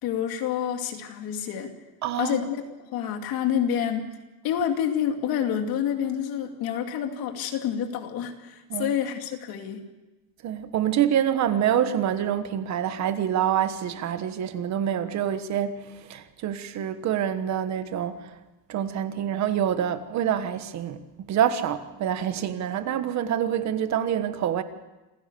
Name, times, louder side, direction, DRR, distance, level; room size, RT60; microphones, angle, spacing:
voice 1, 0.0-1.7 2.2-2.6 2.9-4.1 4.4-9.8, left 9 dB, 75° left, 2.6 m, -28 dB
voice 2, 2.0-2.4 8.7-8.9 10.4-18.3 18.7-24.6, right 9 dB, 50° right, 1.4 m, -26 dB
27.5 x 16.0 x 6.9 m
cardioid pair, 170°, 36 cm